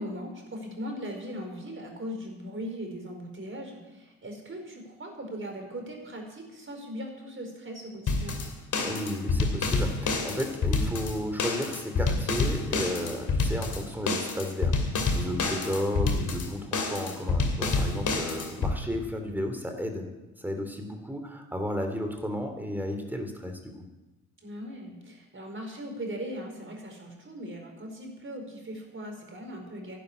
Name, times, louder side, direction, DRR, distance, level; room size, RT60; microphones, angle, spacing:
voice 1, 0.0-8.4 24.4-30.0, equal, 25° right, 2 dB, 4.9 m, -39 dB
sound 1, 8.1-18.7, left 3 dB, 45° left, 2.7 m, -28 dB
voice 2, 8.8-14.8 15.1-20.1 20.4-23.7, equal, 5° right, 4 dB, 3.2 m, -33 dB
11.5 x 9.1 x 9.8 m, 1.1 s
figure-of-eight pair, 45°, 44 cm